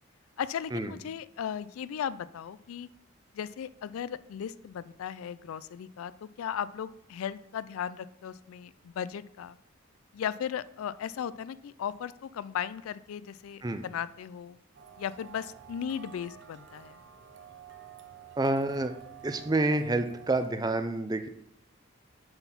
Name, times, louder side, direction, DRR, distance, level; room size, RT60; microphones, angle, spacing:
voice 1, 0.4-2.9 3.3-9.6 10.1-14.6 15.0-17.0, left 8 dB, 80° left, 17 dB, 0.3 m, -36 dB
sound 1, 14.7-20.5, right 9 dB, 55° right, 0.7 m, -50 dB
voice 2, 18.4-18.9 19.2-21.3, right 2 dB, 20° right, 9 dB, 0.4 m, -28 dB
7.7 x 4.0 x 5.8 m, 0.76 s
head